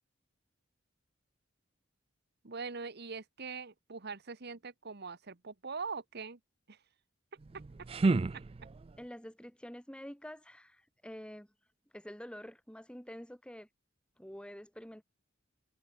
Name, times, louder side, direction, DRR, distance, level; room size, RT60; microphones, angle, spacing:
voice 1, 2.4-6.4 6.7-6.8, right 4 dB, 55° right, 1.4 m, -42 dB
sound 1, 7.4-9.1, right 3 dB, 30° right, 0.4 m, -32 dB
voice 2, 9.0-11.5 11.9-13.7 14.2-15.0, equal, 5° left, 3.7 m, -47 dB
head